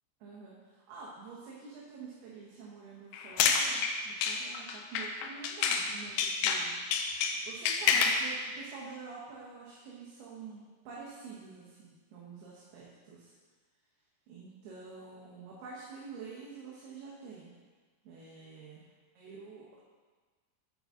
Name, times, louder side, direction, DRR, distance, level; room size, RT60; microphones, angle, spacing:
voice 1, 0.2-6.7 7.4-13.3 14.3-17.5 18.0-18.8 19.2-19.8, right 4 dB, 75° right, -5 dB, 3.0 m, -47 dB
sound 1, 3.1-5.9 6.2-8.3, left 6 dB, 85° left, 2.8 m, -29 dB
8.8 x 7.6 x 3.7 m, 1.4 s
omnidirectional pair, 4.8 m